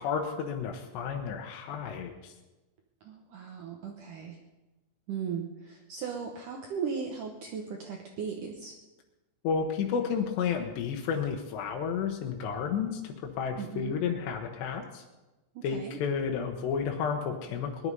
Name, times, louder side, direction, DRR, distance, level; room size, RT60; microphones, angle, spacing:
voice 1, 0.0-2.3 9.4-15.0 15.6-17.9, left 6 dB, 75° left, 2 dB, 3.1 m, -31 dB
voice 2, 3.0-4.4 5.1-8.7 13.6-13.9 15.6-16.0, right 6 dB, 85° right, 2 dB, 1.8 m, -37 dB
20.5 x 11.5 x 5.4 m, 1.1 s
omnidirectional pair, 5.4 m